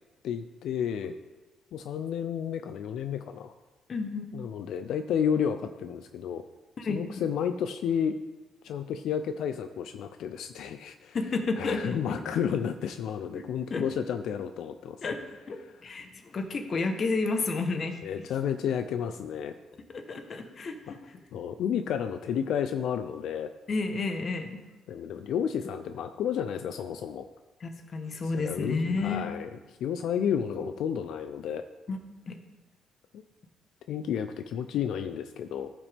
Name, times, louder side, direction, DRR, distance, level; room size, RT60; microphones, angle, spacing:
voice 1, 0.2-1.1 1.7-3.5 4.3-6.5 6.9-8.1 8.6-11.2 11.6-15.0 15.6-15.9 18.0-19.6 20.9-21.0 21.3-23.5 24.9-27.3 28.2-29.5 29.8-31.6 33.1-33.2 33.9-35.7, left 8 dB, 70° left, 9 dB, 0.4 m, -31 dB
voice 2, 3.9-4.3 6.8-7.0 11.1-12.2 13.7-13.9 15.0-15.2 15.5-15.6 15.8-18.0 19.9-21.0 23.7-24.6 27.6-29.2 30.5-30.6 31.9-32.0 32.3-32.4, left 3 dB, 35° left, 6 dB, 1.0 m, -31 dB
14.5 x 6.0 x 3.4 m, 1.2 s
cardioid pair, 150°, 0 cm